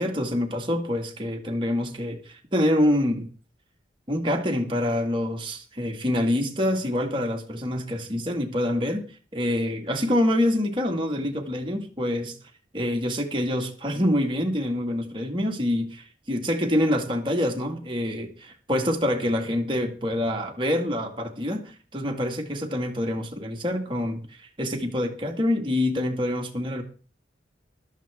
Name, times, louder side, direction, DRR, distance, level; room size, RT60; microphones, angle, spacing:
voice 1, 0.0-3.3 4.1-9.0 9.3-12.4 12.7-26.8, left 1 dB, 25° right, 1.9 m, -26 dB
15.0 x 13.0 x 3.6 m
head